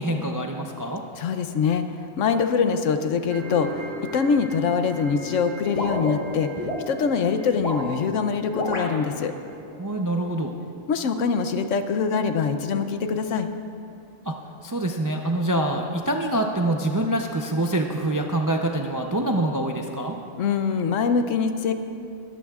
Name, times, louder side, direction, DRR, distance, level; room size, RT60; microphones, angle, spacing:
voice 1, 0.0-1.0 9.8-10.5 14.2-14.4 14.6-20.2, right 1 dB, 25° right, 2 dB, 0.4 m, -25 dB
voice 2, 1.2-1.8 2.2-6.5 6.9-9.3 10.9-13.5 20.4-21.7, left 6 dB, 70° left, 8 dB, 1.0 m, -24 dB
sound 1, 3.3-9.6, right 1 dB, 70° right, 1.6 m, -39 dB
sound 2, 5.8-6.8 7.5-7.9 8.5-8.9, left 1 dB, 30° left, 1.4 m, -29 dB
21.5 x 13.5 x 2.4 m, 2.7 s
omnidirectional pair, 1.4 m